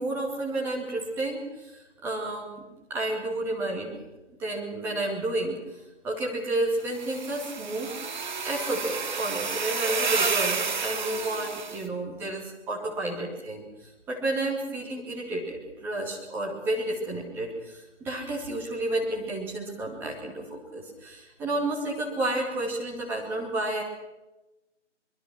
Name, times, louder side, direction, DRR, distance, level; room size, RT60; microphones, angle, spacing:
voice 1, 0.0-2.6 2.9-3.9 4.4-8.0 8.4-23.8, right 2 dB, 5° right, -3 dB, 2.2 m, -31 dB
sound 1, 6.9-11.8, right 5 dB, 40° right, 2.1 m, -30 dB
24.0 x 22.0 x 6.2 m, 1.0 s
figure-of-eight pair, 155°, 36 cm